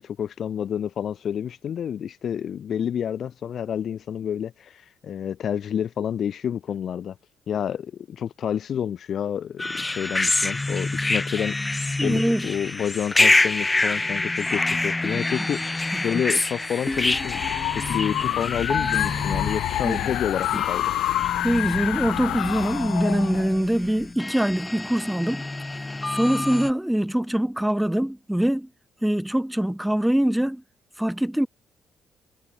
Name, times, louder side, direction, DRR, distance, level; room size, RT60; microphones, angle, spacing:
voice 1, 0.0-7.2 7.5-11.5 12.0-17.4 17.7-20.9, left 8 dB, 60° left, 1.4 m, -29 dB
sound 1, 9.6-26.7, left 2 dB, 15° left, 4.8 m, -27 dB
voice 2, 12.0-12.5 16.1-16.2 19.8-20.1 21.4-25.4 26.1-28.7 29.0-30.6 31.0-31.5, right 1 dB, 5° right, 1.7 m, -23 dB
sound 2, 16.9-24.1, left 15 dB, 90° left, 0.6 m, -28 dB
cardioid pair, 90°, 0 cm